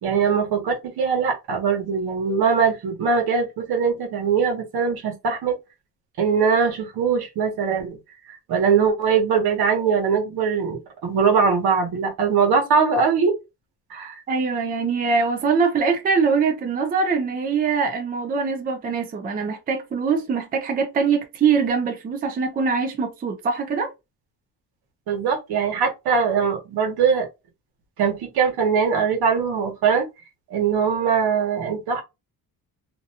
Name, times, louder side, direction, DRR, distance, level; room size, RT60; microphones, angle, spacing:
voice 1, 0.0-5.6 6.2-8.0 8.3-13.3 13.9-14.2 25.1-27.3 28.0-30.1 30.5-32.0, right 6 dB, 80° right, 1.0 m, -21 dB
voice 2, 14.3-23.9, right 5 dB, 25° right, 0.4 m, -23 dB
2.5 x 2.2 x 2.7 m
cardioid pair, 170°, 38 cm